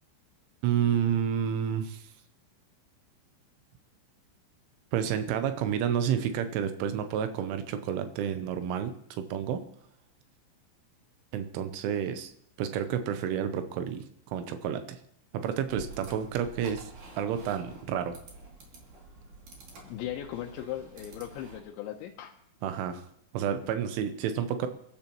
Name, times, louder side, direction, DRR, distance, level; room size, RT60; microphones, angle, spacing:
voice 1, 0.6-2.1 4.9-9.6 11.3-12.3 12.6-15.0 15.3-18.2 22.6-23.0 23.3-24.7, right 8 dB, 85° right, 8 dB, 3.3 m, -30 dB
sound 1, 15.7-21.6, right 3 dB, 45° right, 3.7 m, -48 dB
voice 2, 19.8-22.4, left 12 dB, 80° left, 1 dB, 3.1 m, -38 dB
28.5 x 12.0 x 3.0 m, 0.70 s
omnidirectional pair, 5.6 m